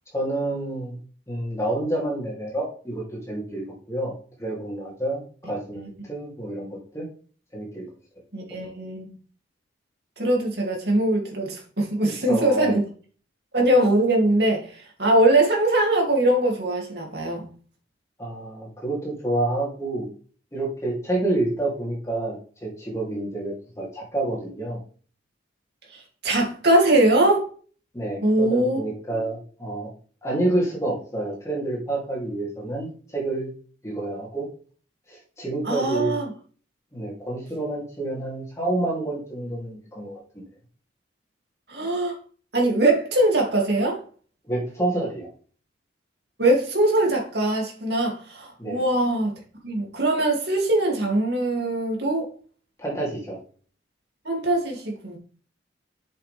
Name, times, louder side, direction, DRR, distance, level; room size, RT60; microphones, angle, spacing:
voice 1, 0.1-1.0 1.3-4.1 4.4-7.1 7.5-7.9 8.5-8.6 12.3-12.7 18.2-20.1 20.5-24.8 27.9-29.9 30.2-33.5 33.8-34.5 35.1-36.1 36.9-40.4 44.5-45.3 48.6-48.8 52.8-53.4, right 2 dB, 15° left, 3.2 m, -28 dB
voice 2, 8.3-9.2 10.2-12.8 13.5-17.5 25.9-27.4 28.2-28.8 29.1-29.2 35.6-36.3 41.7-42.1 42.5-44.0 46.4-49.3 49.6-52.3 54.2-55.2, right 1 dB, 60° right, 2.9 m, -22 dB
7.7 x 7.4 x 3.5 m
head